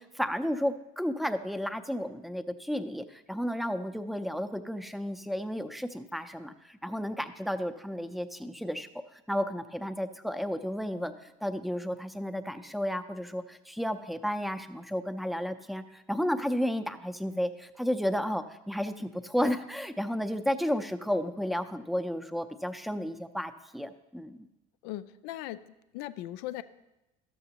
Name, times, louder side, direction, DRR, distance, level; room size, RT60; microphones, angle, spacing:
voice 1, 0.0-8.9 9.1-24.4, equal, ahead, 9 dB, 0.5 m, -32 dB
voice 2, 24.8-26.6, left 14 dB, 80° left, 14 dB, 0.4 m, -39 dB
13.0 x 6.8 x 2.8 m, 0.96 s
supercardioid pair, 100°, 16 cm